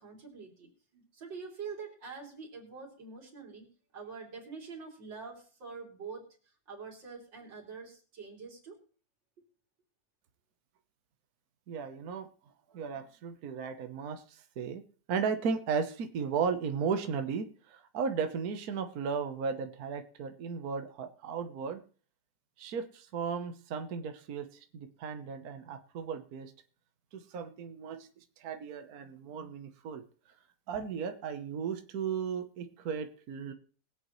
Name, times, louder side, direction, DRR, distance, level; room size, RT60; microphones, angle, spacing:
voice 1, 0.0-6.3 6.7-8.8, right 5 dB, 75° right, -1 dB, 3.9 m, -45 dB
voice 2, 11.7-14.8 15.1-21.8 22.6-26.5 27.1-30.4 30.7-33.5, right 6 dB, 55° right, 7 dB, 1.4 m, -35 dB
21.5 x 8.0 x 3.1 m, 0.40 s
omnidirectional pair, 2.0 m